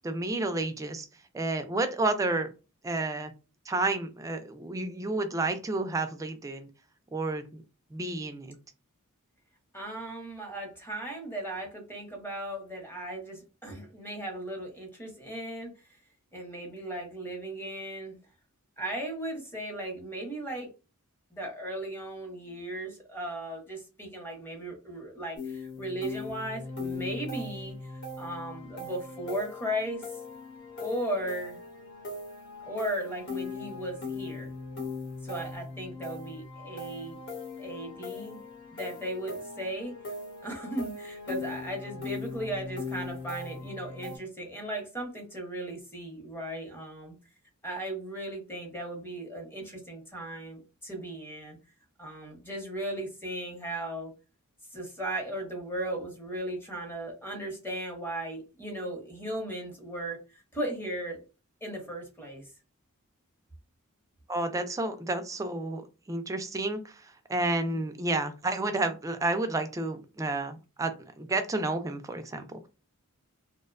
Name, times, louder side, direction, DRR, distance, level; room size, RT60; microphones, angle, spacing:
voice 1, 0.0-1.1 1.3-2.5 2.8-3.3 3.7-6.7 7.1-7.6 7.9-8.6 64.3-72.7, right 2 dB, 15° right, 8 dB, 0.3 m, -31 dB
voice 2, 9.7-16.0 16.3-18.2 18.8-20.7 21.3-30.1 30.8-31.6 32.7-34.5 35.2-37.2 37.6-38.4 38.7-40.0 40.4-47.1 47.6-51.6 52.0-54.1 54.7-61.2 61.6-62.5 67.6-67.8, right 1 dB, 10° left, 1 dB, 0.7 m, -37 dB
sound 1, 25.3-44.2, left 3 dB, 55° left, 0.9 m, -39 dB
2.5 x 2.1 x 2.4 m, 0.31 s
head